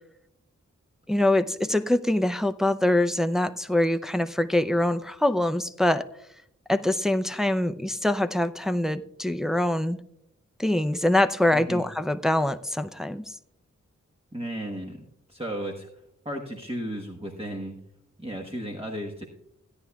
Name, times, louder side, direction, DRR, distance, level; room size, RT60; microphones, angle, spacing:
voice 1, 1.1-6.0 6.7-10.0 10.6-13.2, left 1 dB, ahead, 0.5 m, -24 dB
voice 2, 11.5-11.8 14.3-15.9 16.2-17.8 18.2-19.3, right 1 dB, 20° right, 1.2 m, -34 dB
16.5 x 9.9 x 2.3 m
cardioid pair, 40°, 31 cm